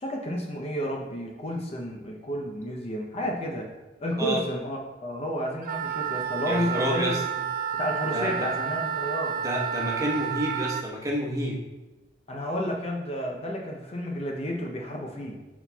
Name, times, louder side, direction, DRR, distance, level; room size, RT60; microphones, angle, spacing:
voice 1, 0.0-3.7 4.0-7.2 7.7-9.4 12.3-15.4, equal, 35° left, 0 dB, 0.6 m, -31 dB
Wind instrument woodwind instrument, 5.6-10.8, right 8 dB, 50° right, 0.3 m, -30 dB
voice 2, 6.5-7.2 8.1-8.5 9.4-11.6, equal, 20° right, -3 dB, 1.1 m, -29 dB
10.0 x 4.1 x 2.3 m, 1.1 s
head